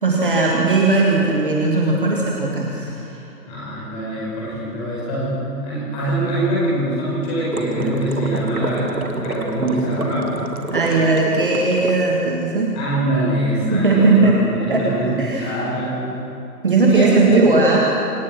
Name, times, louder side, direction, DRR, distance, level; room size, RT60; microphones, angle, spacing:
voice 1, 0.0-3.2 10.7-12.8 13.7-14.4 14.7-14.8 15.2-15.6 16.6-17.8, right 3 dB, 30° right, -2 dB, 1.9 m, -18 dB
voice 2, 3.4-10.3 12.7-15.1 15.4-16.0 16.9-17.6, right 1 dB, 10° left, -6 dB, 5.0 m, -23 dB
sound 1, 7.5-11.9, right 3 dB, 60° right, 2.1 m, -28 dB
26.5 x 16.5 x 6.1 m, 2.8 s
figure-of-eight pair, 155°, 49 cm